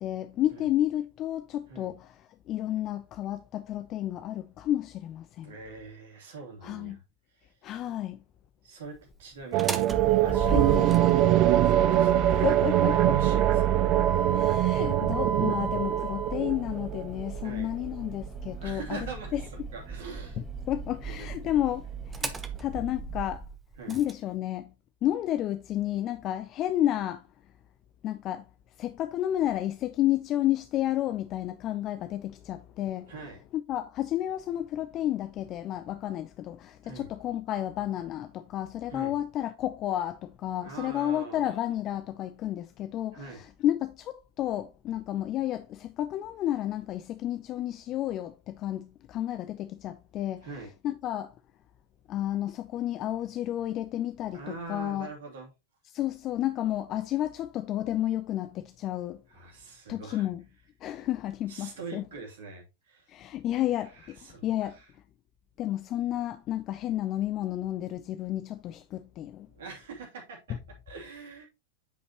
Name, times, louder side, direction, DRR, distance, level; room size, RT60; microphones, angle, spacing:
voice 1, 0.0-5.6 6.6-7.0 7.6-8.2 10.5-10.9 12.4-13.2 14.3-19.1 19.3-19.4 20.7-23.4 23.9-24.7 25.0-27.3 28.0-28.5 28.8-33.1 33.5-50.5 50.8-51.3 52.1-55.1 55.9-59.2 59.9-60.4 60.8-62.1 63.1-64.8 65.6-69.5, left 12 dB, 35° left, 0.5 m, -31 dB
voice 2, 5.4-7.0 7.3-7.6 8.6-9.9 10.2-10.8 11.3-12.3 12.6-14.5 17.4-17.7 18.6-20.4 21.1-21.5 23.8-24.0 33.1-33.4 36.8-37.1 38.9-39.1 40.6-41.5 43.1-43.4 50.4-50.7 54.3-55.5 59.3-60.3 61.5-63.1 63.8-64.9 69.5-70.6 70.9-71.5, right 4 dB, 60° right, 2.7 m, -43 dB
Motor vehicle (road), 9.4-24.1, right 5 dB, 15° right, 0.9 m, -33 dB
sound 1, 9.5-17.5, right 14 dB, 40° right, 0.4 m, -24 dB
8.9 x 5.3 x 2.9 m
figure-of-eight pair, 90°, 0 cm